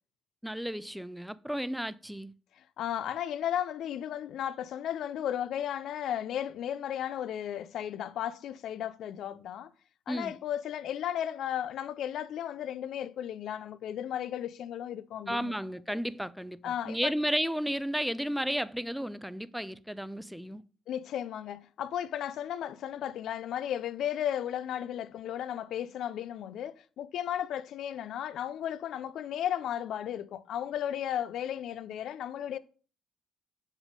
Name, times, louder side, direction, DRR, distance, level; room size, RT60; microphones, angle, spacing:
voice 1, 0.4-2.3 10.1-10.3 15.3-20.6, equal, ahead, 0.4 m, -33 dB
voice 2, 2.8-9.7 10.1-15.5 15.9-16.0 16.6-17.1 20.9-32.6, left 10 dB, 75° left, 0.4 m, -34 dB
7.2 x 3.5 x 5.2 m
cardioid pair, 90°, 0 cm